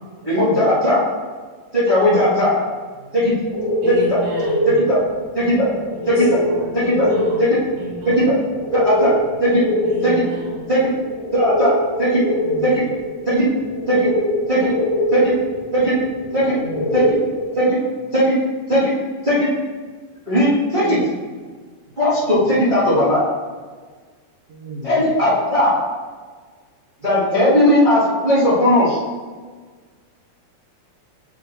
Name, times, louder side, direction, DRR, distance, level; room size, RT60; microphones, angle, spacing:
voice 1, 0.2-1.0 1.7-2.5 3.1-3.3 3.9-4.1 4.9-5.0 5.3-5.7 6.0-6.3 6.7-7.0 7.4-7.5 8.0-8.2 8.7-9.1 9.4-9.6 10.0-10.2 10.7-10.8 11.3-11.7 12.0-12.2 12.6-12.8 13.2-13.4 13.9-14.1 14.5-14.7 15.1-15.3 15.7-15.9 16.3-16.5 16.9-17.2 17.5-17.8 18.1-18.3 18.7-18.9 19.2-19.5 20.3-21.0 22.0-23.2 24.8-25.7 27.0-29.0, equal, 20° right, -11 dB, 1.5 m, -17 dB
sound 1, 3.4-17.4, equal, 45° left, 1.8 m, -24 dB
voice 2, 3.8-4.7 5.9-8.4 9.8-10.8, equal, 85° right, -9 dB, 3.7 m, -33 dB
voice 3, 12.3-12.7 16.3-16.9 20.8-21.0 22.3-22.7 24.5-25.0, equal, 60° right, -1 dB, 1.9 m, -35 dB
7.6 x 6.4 x 2.7 m, 1.5 s
omnidirectional pair, 3.7 m